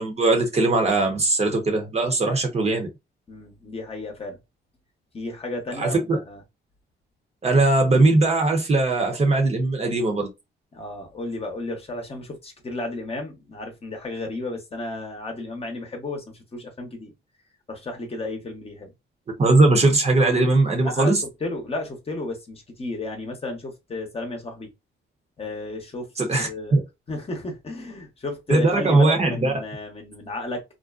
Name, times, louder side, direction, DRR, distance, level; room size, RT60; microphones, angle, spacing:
voice 1, 0.0-2.9 5.8-6.2 7.4-10.3 19.4-21.2 26.2-26.8 28.5-29.5, right 2 dB, 35° right, 0.8 m, -20 dB
voice 2, 3.3-4.4 5.1-6.4 10.7-17.1 17.7-18.9 20.8-21.1 21.4-24.7 25.4-26.1 26.4-26.8 27.1-30.6, left 2 dB, 30° left, 0.9 m, -33 dB
2.5 x 2.1 x 2.4 m
cardioid pair, 90°, 20 cm